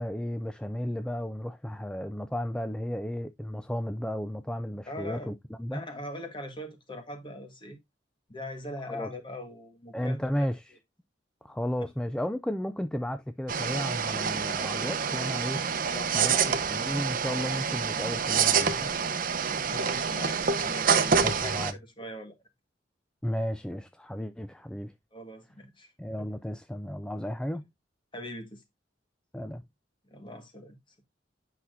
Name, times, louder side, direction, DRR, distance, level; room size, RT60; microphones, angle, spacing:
voice 1, 0.0-5.3 5.6-5.8 8.9-9.1 9.9-10.7 11.4-15.6 16.1-19.0 21.2-21.7 23.2-24.9 26.0-27.7 29.3-29.6, equal, 5° left, 0.4 m, -33 dB
voice 2, 4.9-5.3 5.7-7.8 8.3-10.3 15.8-16.4 19.6-22.4 25.1-26.3 28.1-28.6 30.1-30.8, left 1 dB, 30° left, 1.6 m, -41 dB
sound 1, 13.5-21.7, right 6 dB, 50° right, 0.8 m, -27 dB
8.4 x 5.8 x 2.6 m
head